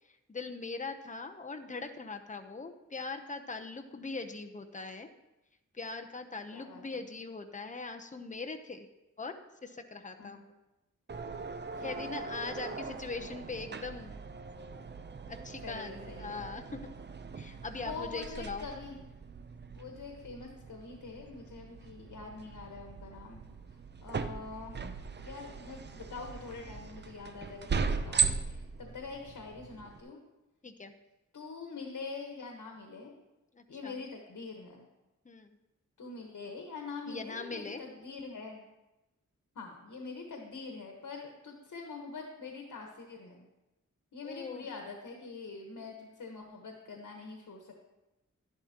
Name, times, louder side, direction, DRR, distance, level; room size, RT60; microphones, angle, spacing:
voice 1, 0.3-5.1 5.7-8.9 9.2-9.3 9.6-10.5 11.8-14.2 15.3-16.9 17.4-18.7 30.6-30.9 33.5-34.0 35.2-35.6 37.1-37.8 44.2-44.6, left 4 dB, 25° left, 6 dB, 0.7 m, -41 dB
voice 2, 6.5-7.0 10.2-10.4 11.7-12.3 12.6-13.0 15.6-16.4 17.8-19.0 19.7-23.4 24.0-24.8 25.2-30.2 31.3-33.1 33.7-34.9 36.0-38.6 39.5-43.5 44.1-47.7, left 4 dB, 85° left, 2 dB, 1.3 m, -44 dB
sound 1, 11.1-30.0, right 5 dB, 35° right, 0.5 m, -39 dB
11.5 x 10.5 x 2.9 m, 1.0 s
wide cardioid pair, 105°, 30 cm